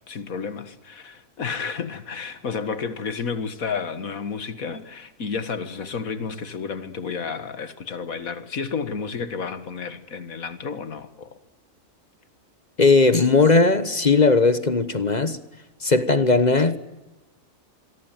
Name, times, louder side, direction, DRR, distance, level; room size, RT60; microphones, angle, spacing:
voice 1, 0.1-11.4, left 5 dB, 85° left, 2.1 m, -31 dB
voice 2, 12.8-15.4 15.8-16.8, left 3 dB, 35° left, 1.2 m, -18 dB
26.0 x 23.0 x 9.2 m
omnidirectional pair, 1.4 m